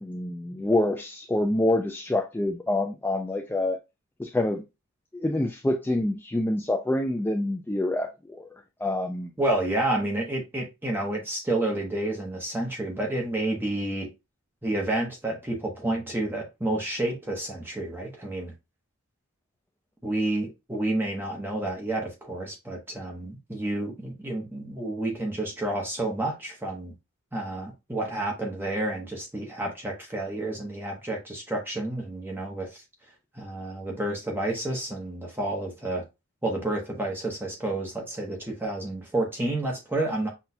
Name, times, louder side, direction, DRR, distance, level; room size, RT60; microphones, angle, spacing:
voice 1, 0.0-3.8 4.2-4.6 5.2-8.5 8.8-9.3, left 1 dB, 10° left, 0.3 m, -26 dB
voice 2, 9.4-14.1 14.6-18.5 20.0-26.9 27.3-32.8 33.3-36.0 36.4-40.3, right 1 dB, 10° right, 0.8 m, -30 dB
5.8 x 2.3 x 2.7 m
head